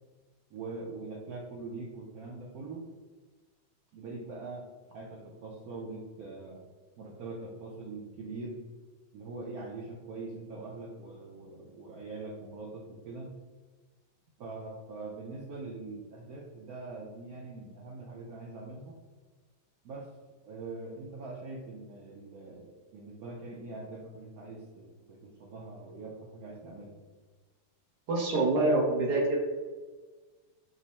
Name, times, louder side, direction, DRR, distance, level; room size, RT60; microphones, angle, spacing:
voice 1, 0.5-2.9 3.9-6.7 7.0-8.6 9.1-13.3 14.4-19.0 19.8-20.1 20.4-27.1, right 3 dB, 85° right, -1 dB, 0.8 m, -43 dB
voice 2, 28.1-29.4, right 2 dB, 60° right, -1 dB, 1.2 m, -26 dB
5.4 x 2.0 x 4.1 m, 1.4 s
omnidirectional pair, 2.3 m